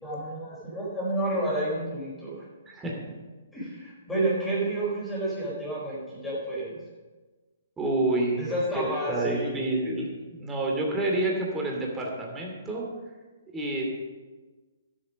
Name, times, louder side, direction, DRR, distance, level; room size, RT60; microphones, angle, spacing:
voice 1, 0.0-2.4 3.5-6.8 8.4-9.6, right 1 dB, 5° left, -8 dB, 4.4 m, -30 dB
voice 2, 2.7-3.0 7.8-8.4 8.7-12.9 13.5-13.8, right 2 dB, 15° right, -1 dB, 2.7 m, -28 dB
12.5 x 7.8 x 5.2 m, 1.3 s
hypercardioid pair, 135°, 0 cm